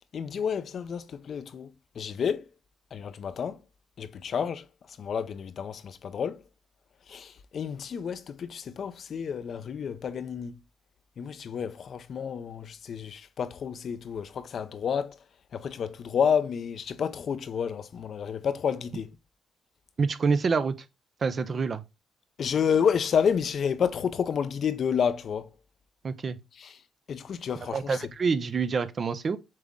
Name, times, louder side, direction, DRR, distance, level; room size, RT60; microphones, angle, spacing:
voice 1, 0.1-1.7 2.0-2.5 2.9-3.6 4.0-4.6 5.0-6.4 7.1-10.6 11.2-15.2 15.5-19.1 22.4-25.5 26.6-26.7 27.1-28.0, left 7 dB, 55° left, 0.6 m, -30 dB
voice 2, 20.0-20.7 21.2-21.8 26.0-26.4 27.7-29.4, right 5 dB, 40° right, 0.7 m, -27 dB
7.5 x 3.6 x 3.7 m
cardioid pair, 90°, 0 cm